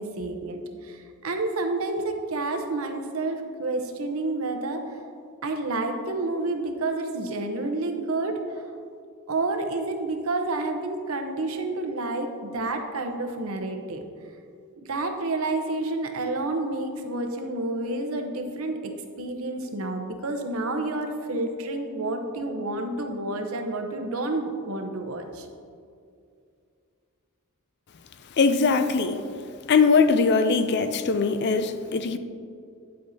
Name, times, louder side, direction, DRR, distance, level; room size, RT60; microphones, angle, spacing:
voice 1, 0.0-4.8 5.4-8.4 9.3-14.0 14.9-18.8 19.2-25.5, right 2 dB, 70° right, 5 dB, 0.8 m, -29 dB
voice 2, 28.4-29.2 29.7-32.2, left 4 dB, 50° left, 10 dB, 0.4 m, -21 dB
9.8 x 7.7 x 2.7 m, 2.4 s
head